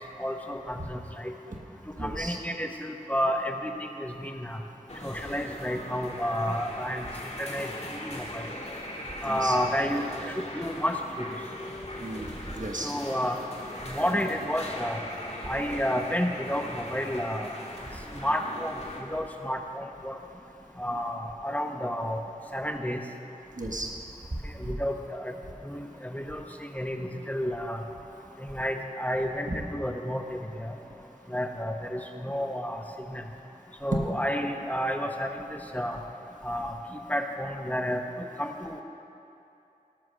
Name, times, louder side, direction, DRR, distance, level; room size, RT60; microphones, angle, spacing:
voice 1, 0.2-1.3 2.0-4.6 5.0-7.1 7.4-8.4 9.2-11.3 12.8-13.4 13.9-15.0 15.5-17.5 18.2-18.8 19.1-20.2 20.8-22.2 22.5-23.0 24.6-25.3 25.6-27.8 28.5-30.7 31.3-32.8 33.1-33.2 33.8-35.5 35.7-36.0 36.4-38.8, equal, 10° left, 3 dB, 0.9 m, -31 dB
voice 2, 2.0-2.4 9.2-9.5 12.0-12.9 23.6-23.9, right 1 dB, 60° right, 1 dB, 1.3 m, -35 dB
sound 1, 4.9-19.0, left 1 dB, 45° left, 1.9 m, -40 dB
17.5 x 6.5 x 6.5 m, 2.8 s
wide cardioid pair, 45°, 15 cm